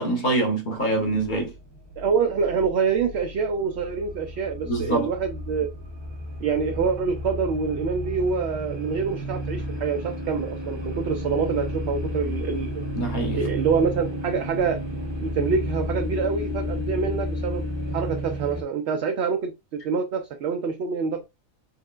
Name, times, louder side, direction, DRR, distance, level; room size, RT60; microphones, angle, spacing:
voice 1, 0.0-1.5 4.6-5.1 12.9-13.4, right 2 dB, 35° left, 1.2 m, -24 dB
sound 1, 0.8-18.6, equal, 25° right, 0.7 m, -32 dB
voice 2, 2.0-5.7 6.4-12.8 13.3-14.8 15.2-21.3, right 5 dB, 65° right, 0.7 m, -26 dB
4.2 x 3.4 x 2.4 m
omnidirectional pair, 1.4 m